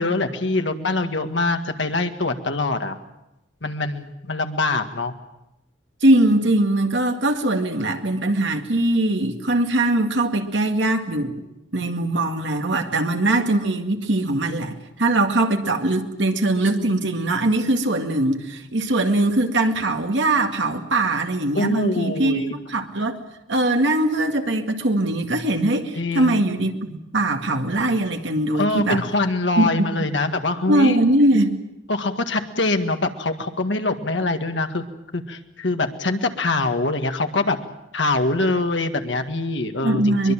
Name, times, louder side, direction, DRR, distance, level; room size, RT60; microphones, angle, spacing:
voice 1, 0.0-3.0 3.6-5.1 21.5-22.6 26.0-26.4 28.6-31.0 31.9-34.8 35.1-37.6 37.9-40.3, left 2 dB, 70° left, 6 dB, 1.9 m, -24 dB
voice 2, 6.0-11.3 11.7-22.4 22.7-23.2 23.5-29.0 29.6-29.7 30.7-31.6 39.8-40.3, right 1 dB, 70° right, 5 dB, 2.1 m, -21 dB
23.0 x 22.5 x 7.4 m, 0.91 s
head